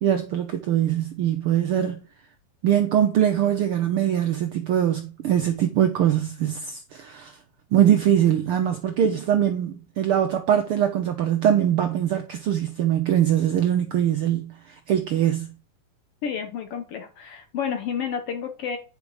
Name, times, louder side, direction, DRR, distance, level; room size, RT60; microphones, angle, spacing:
voice 1, 0.0-2.0 2.6-7.4 7.7-15.5, right 10 dB, 80° right, 1.2 m, -22 dB
voice 2, 16.2-18.8, left 7 dB, 65° left, 1.7 m, -30 dB
9.9 x 5.2 x 4.9 m
omnidirectional pair, 3.4 m